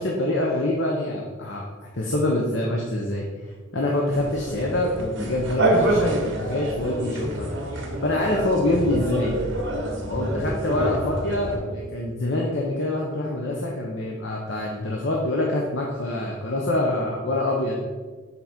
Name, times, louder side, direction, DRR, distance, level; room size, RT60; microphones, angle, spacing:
voice 1, 0.0-1.6 1.9-3.3 3.7-7.5 8.0-9.4 10.1-17.8, left 1 dB, 65° left, -2 dB, 0.9 m, -25 dB
sound 1, 4.1-11.6, right 1 dB, 75° right, 1.7 m, -27 dB
6.9 x 4.1 x 5.9 m, 1.5 s
head